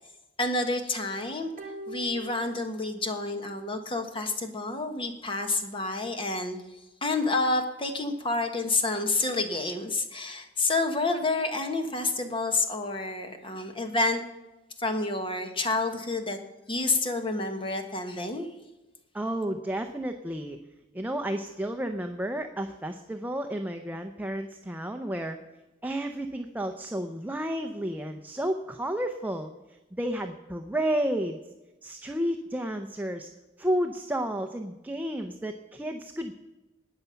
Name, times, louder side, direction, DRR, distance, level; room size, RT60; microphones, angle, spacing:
voice 1, 0.4-1.5 1.9-6.6 7.0-14.2 14.8-16.4 16.7-18.5, left 2 dB, 30° left, 6 dB, 1.3 m, -29 dB
sound 1, 1.6-3.2 3.5-3.6, equal, 45° right, 1.1 m, -43 dB
voice 2, 19.1-20.6 20.9-25.4 25.8-29.5 29.9-31.4 31.8-33.3 33.6-36.3, right 1 dB, 10° right, 5 dB, 0.6 m, -31 dB
19.0 x 6.9 x 5.8 m, 1.1 s
head